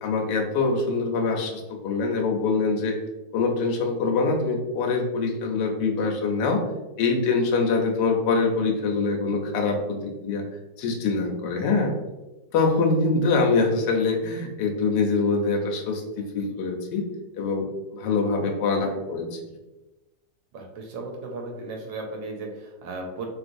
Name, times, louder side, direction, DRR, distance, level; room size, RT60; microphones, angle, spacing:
voice 1, 0.0-3.0 3.3-6.6 7.0-10.4 10.8-11.9 12.5-17.1 17.3-17.7 17.9-19.4, left 4 dB, 70° left, 2 dB, 1.2 m, -24 dB
voice 2, 20.5-23.3, right 3 dB, 85° right, 1 dB, 1.4 m, -35 dB
3.1 x 3.0 x 2.5 m, 1.1 s
omnidirectional pair, 2.0 m